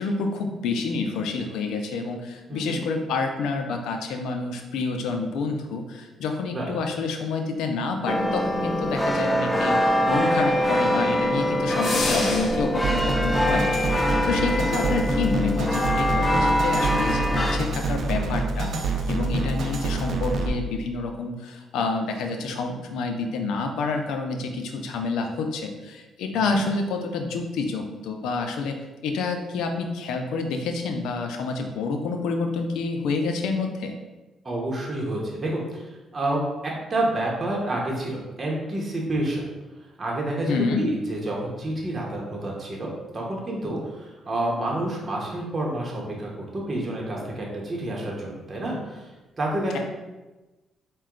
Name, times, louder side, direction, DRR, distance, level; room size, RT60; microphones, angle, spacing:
voice 1, 0.0-13.6 14.0-18.7 19.1-28.8 29.0-33.9 40.5-40.8, left 4 dB, 85° left, 4 dB, 0.5 m, -28 dB
sound 1, 8.1-17.6, left 1 dB, 5° left, 0.4 m, -24 dB
sound 2, 11.8-12.8, left 2 dB, 55° left, 0.8 m, -28 dB
sound 3, 12.8-20.5, right 3 dB, 60° right, 0.5 m, -27 dB
voice 2, 34.4-39.5 40.0-42.9 43.1-49.1 49.4-49.8, right 1 dB, 30° right, -2 dB, 0.9 m, -29 dB
4.2 x 2.2 x 3.7 m, 1.1 s
cardioid pair, 90°, 0 cm